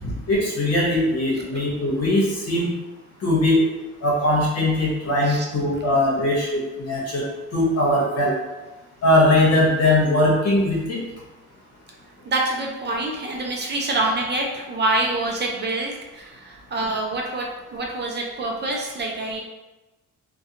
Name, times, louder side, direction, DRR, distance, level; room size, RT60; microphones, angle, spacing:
voice 1, 0.0-2.7 3.2-3.6 4.0-7.2 7.5-8.3 9.0-11.0, left 1 dB, 55° left, -4 dB, 1.0 m, -20 dB
voice 2, 12.3-19.4, right 2 dB, 35° right, 0 dB, 0.5 m, -26 dB
2.4 x 2.2 x 2.8 m, 1.1 s
cardioid pair, 90°, 30 cm